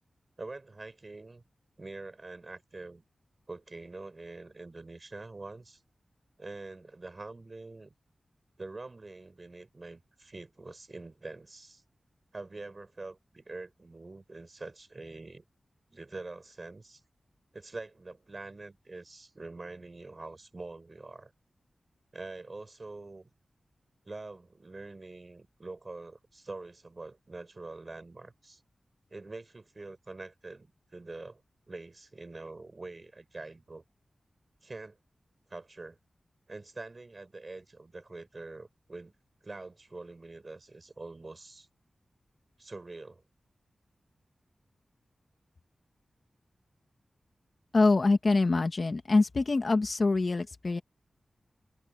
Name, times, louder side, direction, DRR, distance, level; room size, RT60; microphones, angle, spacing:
voice 1, 0.4-1.4 1.8-3.0 3.5-5.8 6.4-7.9 8.6-11.8 12.3-15.4 15.9-17.0 17.5-21.3 22.1-23.3 24.0-28.6 29.1-31.4 31.7-33.8 34.6-35.0 35.5-36.0 36.5-39.1 39.4-41.7 42.6-43.2, right 3 dB, 40° right, 6.6 m, -45 dB
voice 2, 47.7-50.8, left 3 dB, 50° left, 1.7 m, -25 dB
wide cardioid pair, 65°, 0 cm